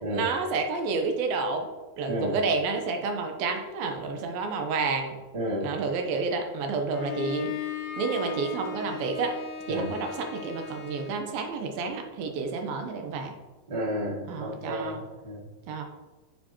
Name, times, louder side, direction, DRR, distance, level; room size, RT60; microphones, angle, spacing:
voice 1, 0.1-1.7 2.0-5.2 5.6-9.4 9.7-13.4 14.3-15.0 15.7-15.8, right 4 dB, 85° right, 4 dB, 2.7 m, -30 dB
voice 2, 5.3-5.7 9.7-10.0 13.7-15.5, equal, 20° right, -5 dB, 1.3 m, -31 dB
Bowed string instrument, 6.9-11.3, left 6 dB, 70° left, 2.0 m, -37 dB
11.0 x 6.9 x 3.0 m, 1.2 s
omnidirectional pair, 4.2 m